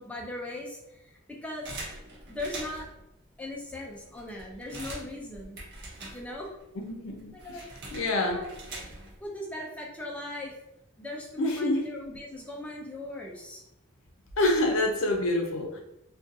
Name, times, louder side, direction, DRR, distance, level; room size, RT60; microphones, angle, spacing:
voice 1, 0.0-1.8 2.3-2.9 3.4-5.6 6.1-6.5 7.3-7.6 8.2-8.5 9.2-10.5 11.0-13.6, left 1 dB, 5° left, -2 dB, 0.3 m, -39 dB
sound 1, 1.6-3.0 3.6-3.7 3.9-6.6 6.9-9.2, right 2 dB, 55° right, 0.8 m, -43 dB
voice 2, 6.8-7.6 7.9-8.4 11.4-11.9 14.4-15.8, left 2 dB, 70° left, 3 dB, 0.5 m, -27 dB
2.6 x 2.2 x 2.6 m, 0.86 s
head